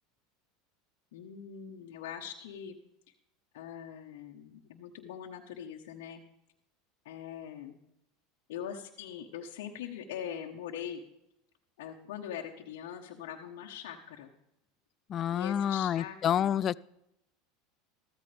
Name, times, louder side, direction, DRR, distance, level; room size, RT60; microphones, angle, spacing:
voice 1, 1.1-2.8 3.5-6.2 7.0-7.8 8.5-11.0 11.8-14.3 15.3-16.5, left 9 dB, 75° left, 0 dB, 1.2 m, -42 dB
voice 2, 15.1-16.8, left 9 dB, 40° left, 21 dB, 0.4 m, -28 dB
14.5 x 14.0 x 3.5 m, 0.83 s
hypercardioid pair, 100°, 0 cm